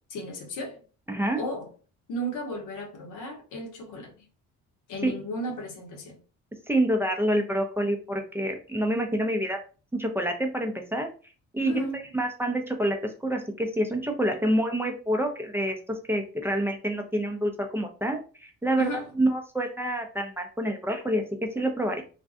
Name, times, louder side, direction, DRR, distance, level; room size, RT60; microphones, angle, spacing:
voice 1, 0.1-0.8 1.4-1.7 2.1-4.1 4.9-6.2 11.6-12.0 18.8-19.1, equal, 85° left, 0.9 m, -34 dB
voice 2, 1.1-1.4 5.0-5.1 6.7-9.6 9.9-11.1 11.5-11.8 12.1-18.9 19.2-21.2 21.5-22.0, right 1 dB, 10° right, 0.5 m, -27 dB
2.5 x 2.2 x 2.4 m
cardioid pair, 90°, 30 cm